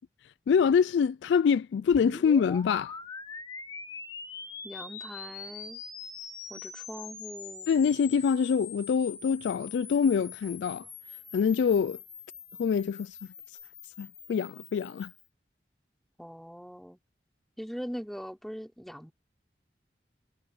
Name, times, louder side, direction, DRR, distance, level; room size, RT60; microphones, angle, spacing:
voice 1, 0.5-2.9 7.7-10.9 11.3-12.0 12.6-13.1 14.0-15.1, left 6 dB, 80° left, 0.3 m, -25 dB
sound 1, 1.9-15.2, left 5 dB, 20° left, 2.4 m, -44 dB
voice 2, 4.6-5.8 6.5-7.7 16.2-17.0 17.6-19.1, equal, ahead, 3.4 m, -41 dB
head